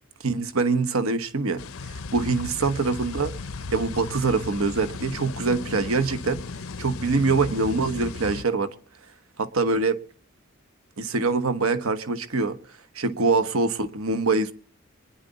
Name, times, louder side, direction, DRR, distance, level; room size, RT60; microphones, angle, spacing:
voice 1, 0.2-1.6 1.9-3.3 3.7-6.4 6.8-8.7 9.4-10.0 11.0-12.6 12.9-14.5, right 3 dB, 90° right, 1.1 m, -24 dB
sound 1, 1.6-8.4, left 4 dB, 85° left, 0.7 m, -36 dB
25.0 x 10.5 x 4.1 m
head